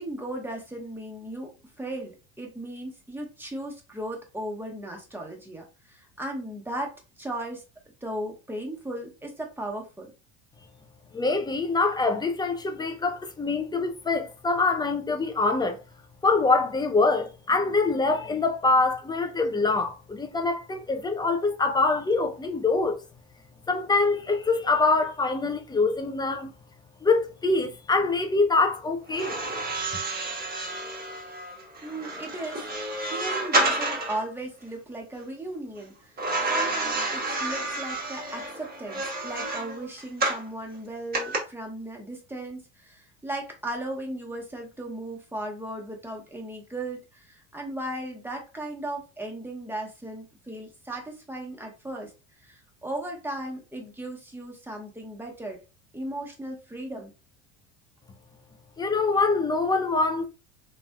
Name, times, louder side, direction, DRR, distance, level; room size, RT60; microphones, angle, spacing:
voice 1, 0.0-1.5 1.8-7.6 8.0-10.1 31.8-32.7 33.0-52.1 52.4-55.6 55.9-57.1, right 1 dB, 5° right, 1.1 m, -36 dB
voice 2, 11.1-15.8 16.2-23.0 23.7-26.5 27.0-29.4 58.8-60.3, left 3 dB, 10° left, 0.5 m, -24 dB
sound 1, 29.1-34.2 36.2-40.5 41.1-41.4, right 2 dB, 25° right, 1.4 m, -29 dB
3.2 x 2.5 x 2.2 m
hypercardioid pair, 85°, 36 cm